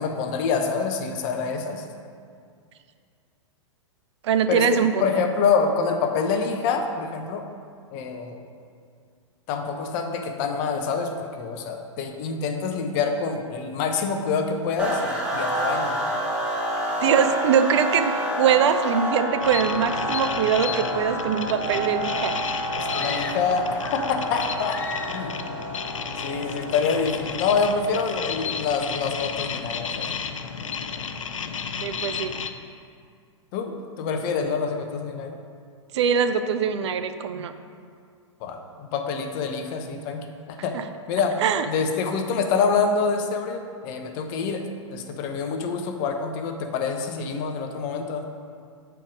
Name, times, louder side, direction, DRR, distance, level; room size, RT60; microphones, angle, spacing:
voice 1, 0.0-1.8 4.5-7.4 7.9-8.4 9.5-16.2 22.7-24.8 25.1-25.4 26.2-30.2 33.5-35.4 38.4-40.8 41.1-41.4 41.6-48.2, left 5 dB, 45° left, 5 dB, 0.8 m, -26 dB
voice 2, 4.2-5.1 17.0-22.3 31.8-32.3 35.9-37.5 40.7-40.8 41.4-41.7, right 7 dB, 60° right, 9 dB, 0.5 m, -22 dB
sound 1, 14.8-28.2, equal, 5° right, 1.6 m, -29 dB
sound 2, 19.4-32.5, left 6 dB, 80° left, 0.5 m, -33 dB
sound 3, 22.9-24.3 24.6-25.4, left 4 dB, 15° left, 0.3 m, -36 dB
7.4 x 4.6 x 5.0 m, 2.3 s
figure-of-eight pair, 105°, 16 cm